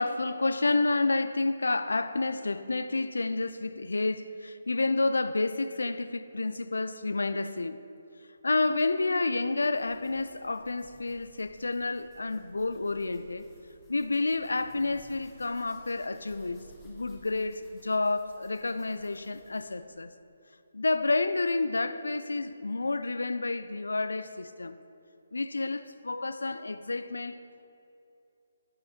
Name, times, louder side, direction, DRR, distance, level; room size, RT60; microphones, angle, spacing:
voice 1, 0.0-7.8 8.4-13.5 13.9-20.1 20.7-24.8 25.3-27.4, left 3 dB, 75° left, 0.4 m, -30 dB
sound 1, 9.6-19.8, equal, 15° left, 2.3 m, -56 dB
11.5 x 7.9 x 4.3 m
figure-of-eight pair, 140°, 0 cm